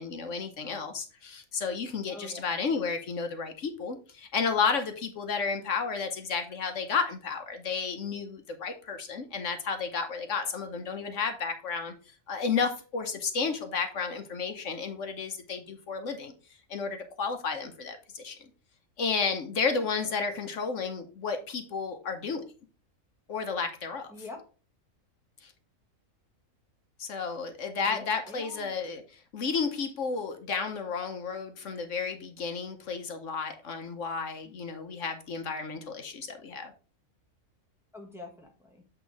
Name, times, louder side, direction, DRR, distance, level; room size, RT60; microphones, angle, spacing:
voice 1, 0.0-11.9 12.3-16.3 16.7-18.4 19.0-22.4 23.3-24.1 25.4-25.5 27.0-29.0 29.3-36.7, left 5 dB, 65° left, 7 dB, 1.2 m, -32 dB
voice 2, 2.1-2.6 24.1-24.4 27.8-28.7 37.9-38.8, left 2 dB, ahead, 1 dB, 1.3 m, -45 dB
8.2 x 3.6 x 4.6 m, 0.37 s
omnidirectional pair, 1.4 m